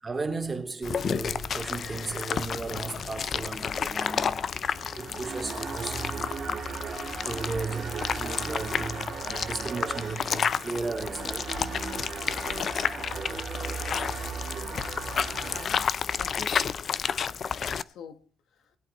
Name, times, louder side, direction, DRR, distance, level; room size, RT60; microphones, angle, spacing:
voice 1, 0.0-4.6 4.9-6.3 7.2-11.6, right 3 dB, 25° right, 2.6 m, -35 dB
sound 1, 0.8-17.8, left 7 dB, 50° left, 0.6 m, -31 dB
sound 2, 4.5-15.6, right 6 dB, 60° right, 3.3 m, -37 dB
voice 2, 15.5-17.0 17.6-18.2, left 6 dB, 80° left, 1.4 m, -46 dB
21.0 x 8.2 x 4.2 m
cardioid pair, 90°, 0 cm